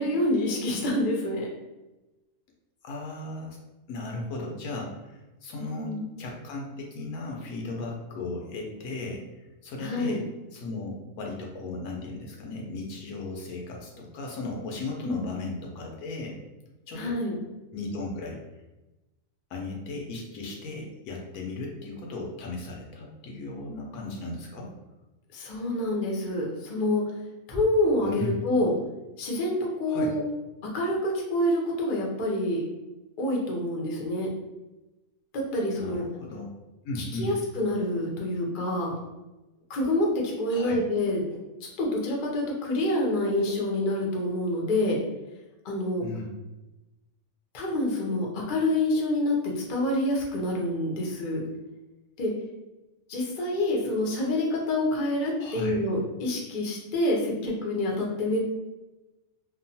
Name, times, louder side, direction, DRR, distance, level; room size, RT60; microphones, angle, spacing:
voice 1, 0.0-1.5 5.6-6.1 9.8-10.2 15.0-15.3 16.9-17.3 25.3-27.0 27.5-28.7 29.2-30.2 30.7-32.6 33.2-34.3 35.5-36.0 37.1-38.9 39.7-40.1 40.4-45.0 45.6-46.1 47.5-51.4 52.2-52.3 53.1-58.4, left 1 dB, 50° left, -2 dB, 0.6 m, -27 dB
voice 2, 2.8-3.6 3.9-10.2 10.5-16.4 16.9-17.2 17.7-18.4 19.5-24.7 28.0-28.4 29.9-30.2 35.8-36.5 36.8-37.3 40.5-40.8 46.0-46.3 55.4-55.8, left 2 dB, 85° left, 0 dB, 1.1 m, -36 dB
2.9 x 2.1 x 2.7 m, 1.0 s
omnidirectional pair, 1.5 m